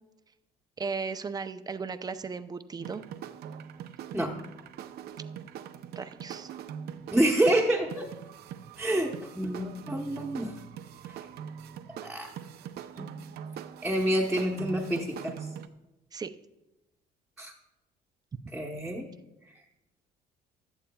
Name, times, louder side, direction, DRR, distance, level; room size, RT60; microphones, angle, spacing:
voice 1, 0.8-3.0 6.0-6.5 16.1-16.3 18.3-18.4, right 5 dB, 25° right, 11 dB, 0.5 m, -36 dB
sound 1, 2.8-15.7, right 8 dB, 70° right, 0.6 m, -42 dB
voice 2, 7.1-8.1 8.8-10.5 11.1-11.2 12.0-12.3 13.0-13.1 13.8-15.3 17.4-17.5 18.5-19.1, right 1 dB, 5° right, -1 dB, 1.0 m, -28 dB
16.0 x 11.5 x 2.3 m, 1.0 s
cardioid pair, 110°, 17 cm